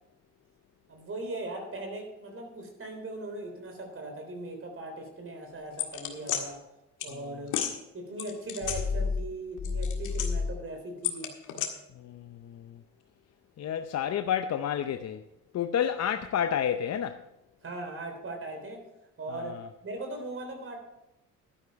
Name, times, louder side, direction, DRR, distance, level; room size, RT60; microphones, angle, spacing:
voice 1, 0.9-6.6 7.0-7.6 7.9-11.3 17.6-18.8 19.2-19.6 19.8-20.8, right 2 dB, 45° right, 3.5 m, -39 dB
sound 1, 5.8-6.4 7.0-7.1 7.5-7.7 8.2-9.3 9.6-10.6 11.0-11.7, left 6 dB, 85° left, 1.8 m, -30 dB
voice 2, 12.0-12.8 13.6-15.2 15.5-17.2 19.3-19.7, left 9 dB, 60° left, 0.7 m, -30 dB
12.0 x 9.7 x 4.7 m
cardioid pair, 90°, 30 cm